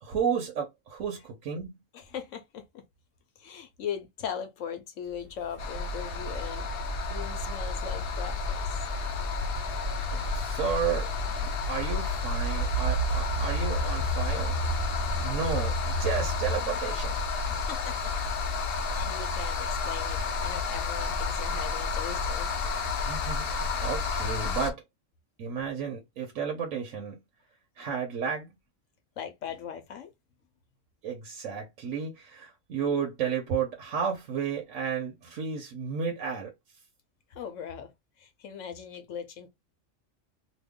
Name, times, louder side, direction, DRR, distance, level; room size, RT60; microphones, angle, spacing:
voice 1, 0.0-1.7 10.0-14.6 14.8-17.2 23.1-24.8 25.4-27.2 27.8-28.5 31.0-36.5, right 6 dB, 80° right, 1.2 m, -32 dB
voice 2, 1.9-2.8 3.4-6.7 7.1-8.6 17.5-18.3 18.6-22.5 29.2-30.1 37.3-37.9 38.2-39.5, left 8 dB, 75° left, 1.1 m, -39 dB
sound 1, 5.3-16.6, equal, 55° right, 0.7 m, -33 dB
sound 2, 5.6-24.7, left 4 dB, 55° left, 0.8 m, -31 dB
3.0 x 2.3 x 3.5 m
omnidirectional pair, 1.3 m